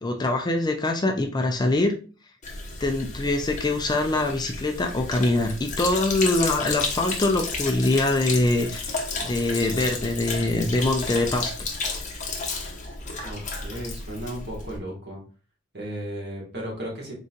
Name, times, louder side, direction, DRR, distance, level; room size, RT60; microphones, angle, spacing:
voice 1, 0.0-1.9 2.8-8.9 9.2-11.5, left 2 dB, 20° left, 4 dB, 0.4 m, -23 dB
Sink (filling or washing), 2.4-14.8, left 3 dB, 40° left, 0.9 m, -32 dB
voice 2, 13.2-15.2 15.7-17.1, equal, 55° right, -2 dB, 1.8 m, -35 dB
3.9 x 3.8 x 2.5 m, 0.37 s
head